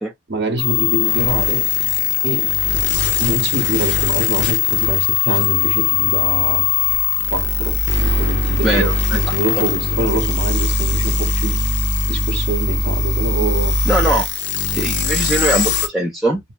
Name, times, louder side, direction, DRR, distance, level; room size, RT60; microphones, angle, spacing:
voice 1, 0.3-1.7 2.2-2.6 3.2-6.7 7.3-11.6 12.1-13.8, right 2 dB, 60° right, 0.7 m, -24 dB
sound 1, 0.6-15.9, left 5 dB, 70° left, 0.7 m, -19 dB
voice 2, 8.6-9.2 13.9-14.3 14.7-16.4, right 1 dB, ahead, 0.5 m, -20 dB
2.6 x 2.1 x 3.2 m
head